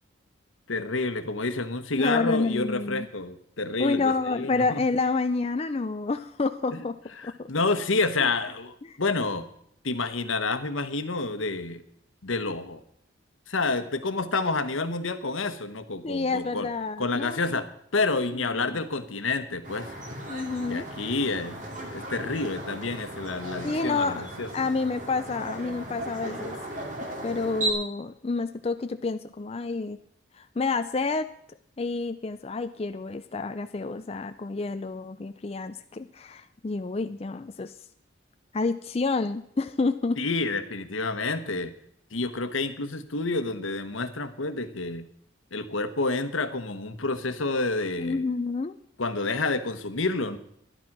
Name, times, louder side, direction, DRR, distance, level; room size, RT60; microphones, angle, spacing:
voice 1, 0.7-4.8 6.7-6.8 7.2-9.5 9.8-11.8 12.2-12.8 13.5-16.7 17.0-17.7 17.9-19.9 20.7-21.6 21.9-24.5 40.2-41.7 42.1-45.1 45.5-48.3 49.0-50.4, left 3 dB, 80° left, 10 dB, 1.1 m, -29 dB
voice 2, 2.0-3.1 3.8-7.0 7.2-7.5 8.2-8.3 8.8-9.0 16.0-17.6 18.3-18.8 20.3-20.9 23.6-24.2 24.5-26.6 27.2-30.0 30.4-31.3 31.8-37.8 38.5-40.2 48.0-48.8, left 3 dB, 30° left, 9 dB, 0.4 m, -29 dB
sound 1, 19.6-27.7, right 1 dB, 40° right, 2.3 m, -36 dB
11.5 x 11.0 x 6.0 m, 0.68 s
head